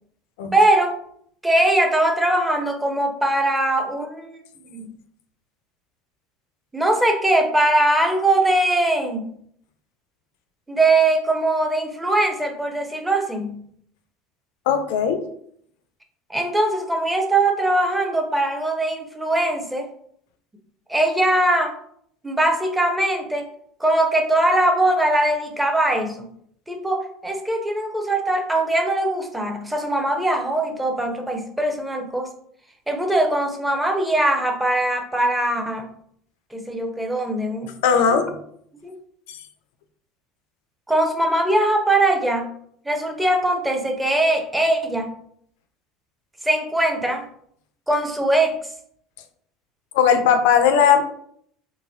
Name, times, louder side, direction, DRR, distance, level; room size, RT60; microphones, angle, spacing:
voice 1, 0.5-1.0 1.4-4.4 4.7-4.9 6.7-9.3 10.7-13.6 16.3-19.9 20.9-21.7 22.2-23.5 23.8-26.3 26.7-32.3 32.9-35.9 36.5-37.7 38.1-38.2 38.8-39.0 40.9-42.5 42.9-45.1 46.4-47.3 47.9-48.6, right 1 dB, 5° right, 4 dB, 0.6 m, -21 dB
voice 2, 14.7-15.3 37.8-38.4 39.3-39.4 49.9-51.0, left 7 dB, 65° left, 7 dB, 0.4 m, -17 dB
3.9 x 2.2 x 2.6 m, 0.65 s
figure-of-eight pair, 65°, 0 cm